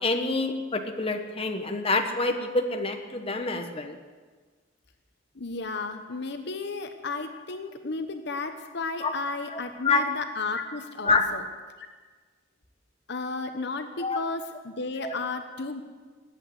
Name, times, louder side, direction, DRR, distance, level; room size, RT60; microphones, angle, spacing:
voice 1, 0.0-4.0 9.0-9.1 9.5-10.0 11.0-11.3 14.0-14.2 15.0-15.1, left 3 dB, 30° left, 4 dB, 1.3 m, -27 dB
voice 2, 5.3-11.4 11.8-11.9 13.1-15.8, left 3 dB, 65° left, 7 dB, 1.1 m, -33 dB
20.5 x 8.4 x 7.8 m, 1.4 s
head